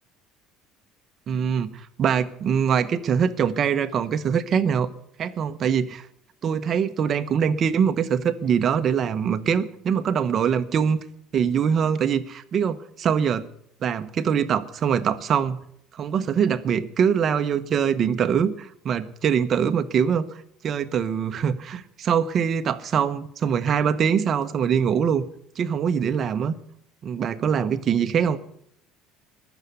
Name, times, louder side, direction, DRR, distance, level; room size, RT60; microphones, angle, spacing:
voice 1, 1.3-4.9 5.2-6.1 6.4-11.0 11.3-13.4 13.8-15.6 15.9-25.2 25.6-26.5 27.0-28.4, right 7 dB, 30° right, 12 dB, 0.9 m, -23 dB
21.0 x 7.1 x 6.8 m, 0.67 s
cardioid pair, 170°, 0 cm